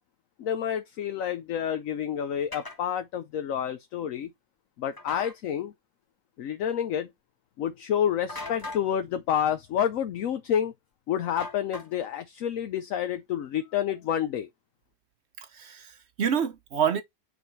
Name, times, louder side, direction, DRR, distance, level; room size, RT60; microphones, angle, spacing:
voice 1, 0.4-4.3 4.8-5.7 6.4-7.1 7.6-10.7 11.1-14.5, left 9 dB, 65° left, 0.9 m, -29 dB
sound 1, 2.5-2.8 5.0-5.3 8.3-8.9 11.4-12.1, left 2 dB, 15° left, 1.1 m, -38 dB
voice 2, 15.4-17.0, right 8 dB, 55° right, 0.9 m, -28 dB
6.8 x 4.5 x 3.2 m
omnidirectional pair, 1.7 m